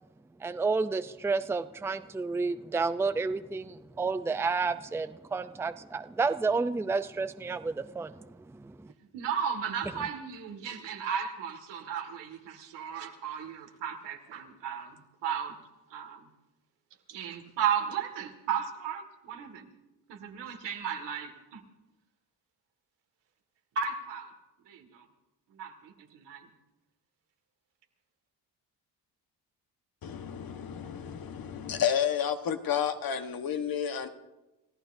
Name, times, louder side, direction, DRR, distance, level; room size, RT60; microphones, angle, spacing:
voice 1, 0.4-8.1, right 4 dB, 5° right, 11 dB, 0.5 m, -30 dB
voice 2, 9.1-15.6 15.9-16.3 17.1-19.7 20.1-21.6 23.8-24.3 24.7-25.0 25.5-26.5, right 7 dB, 90° right, 4 dB, 2.1 m, -35 dB
voice 3, 30.0-34.1, left 8 dB, 55° left, 7 dB, 1.3 m, -31 dB
29.5 x 14.5 x 2.7 m, 1.0 s
cardioid pair, 95°, 41 cm